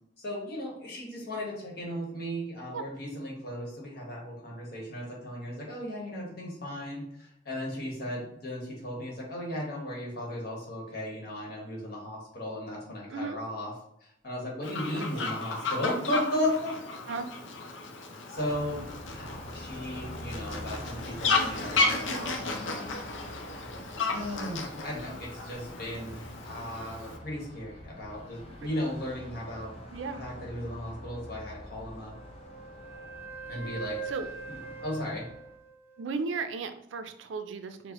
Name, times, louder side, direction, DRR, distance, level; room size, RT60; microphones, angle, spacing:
voice 1, 0.2-13.7 14.0-16.8 17.7-17.8 18.3-18.9 19.1-22.9 24.1-29.7 30.1-32.1 33.5-34.1 34.8-35.3, left 1 dB, 55° left, -3 dB, 1.2 m, -36 dB
Fowl, 14.6-27.2, left 3 dB, 85° left, 0.6 m, -34 dB
voice 2, 14.8-15.3 17.1-17.3 29.9-30.2 34.1-34.3 36.0-37.9, right 4 dB, 80° right, 9 dB, 0.4 m, -35 dB
Car passing by, 18.3-35.6, left 1 dB, 30° left, 0.6 m, -45 dB
Wind instrument woodwind instrument, 32.1-36.3, right 5 dB, 15° right, 0.4 m, -43 dB
4.6 x 2.1 x 3.0 m, 0.78 s
head